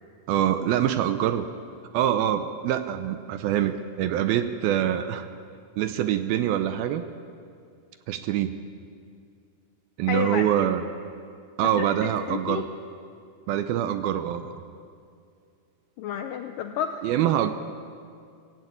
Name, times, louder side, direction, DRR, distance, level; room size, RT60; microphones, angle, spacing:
voice 1, 0.3-1.5 1.9-5.3 5.8-7.0 8.1-8.5 10.0-10.8 11.6-12.6 13.5-14.5 17.0-17.5, right 11 dB, 80° right, 10 dB, 2.3 m, -25 dB
voice 2, 10.1-10.7 11.6-12.7 16.0-17.1, left 8 dB, 85° left, 7 dB, 2.0 m, -31 dB
24.5 x 15.5 x 8.5 m, 2.4 s
omnidirectional pair, 4.8 m